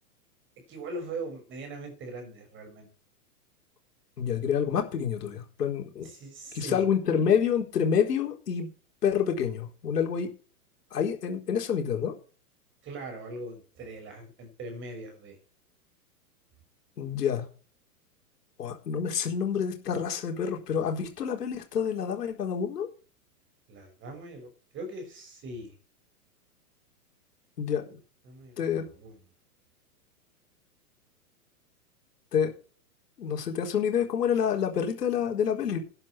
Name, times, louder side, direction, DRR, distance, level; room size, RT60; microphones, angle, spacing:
voice 1, 0.7-2.9 6.0-6.8 12.8-15.4 23.7-25.7 28.2-29.2, right 2 dB, 25° right, 5 dB, 6.3 m, -41 dB
voice 2, 4.2-6.1 6.5-8.7 9.0-10.3 10.9-12.1 17.0-17.5 18.6-22.9 27.6-28.0 28.6-28.8 32.3-32.5 33.2-35.8, left 7 dB, 85° left, 3 dB, 4.3 m, -28 dB
12.5 x 9.9 x 4.5 m, 0.38 s
hypercardioid pair, 140°, 46 cm